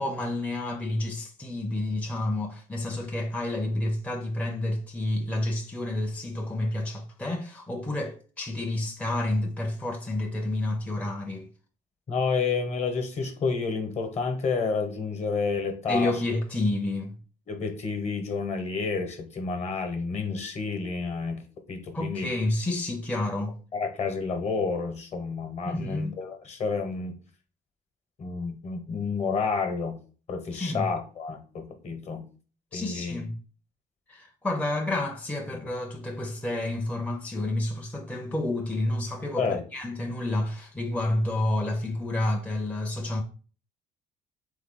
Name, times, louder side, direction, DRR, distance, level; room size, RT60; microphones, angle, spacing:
voice 1, 0.0-11.5 15.9-17.2 21.9-23.6 25.6-26.1 30.5-30.9 32.7-33.4 34.1-43.2, left 1 dB, 10° left, 0.5 m, -29 dB
voice 2, 12.1-16.2 17.5-21.4 21.7-22.3 23.7-27.1 28.2-30.0 30.3-32.3 32.7-33.2 35.5-35.6 39.4-39.6, left 4 dB, 40° left, 1.1 m, -30 dB
3.7 x 3.6 x 3.7 m
cardioid pair, 110°, 17 cm